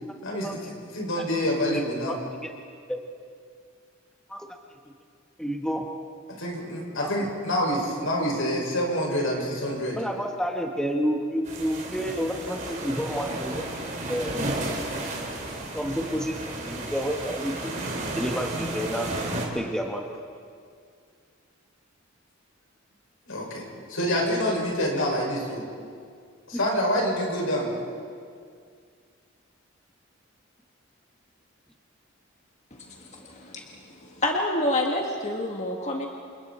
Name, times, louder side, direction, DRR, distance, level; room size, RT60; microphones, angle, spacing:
voice 1, 0.9-2.2 6.4-10.0 23.3-25.7 26.5-27.7, equal, 80° left, -2 dB, 6.0 m, -27 dB
voice 2, 1.7-2.5 2.9-3.0 4.3-4.5 5.4-5.9 7.0-7.3 7.6-7.7 10.0-14.5 15.7-17.9 18.1-19.1 19.5-20.1 24.0-24.2 26.5-26.6, equal, 5° left, 2 dB, 1.2 m, -30 dB
sound 1, 11.5-19.5, right 2 dB, 35° right, 3.6 m, -33 dB
voice 3, 33.0-36.1, left 1 dB, 35° left, 0 dB, 1.6 m, -28 dB
28.5 x 27.5 x 4.4 m, 2.2 s
head